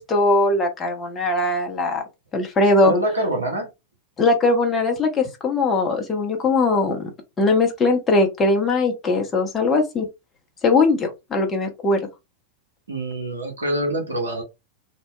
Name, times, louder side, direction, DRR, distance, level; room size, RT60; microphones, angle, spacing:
voice 1, 0.0-2.0 2.3-2.9 4.2-7.1 7.4-10.1 10.6-12.1, left 2 dB, 20° left, 2 dB, 0.7 m, -20 dB
voice 2, 2.8-3.7 12.9-14.4, right 1 dB, 75° right, 2 dB, 0.8 m, -25 dB
2.7 x 2.1 x 2.3 m, 0.23 s
figure-of-eight pair, 90°, 0 cm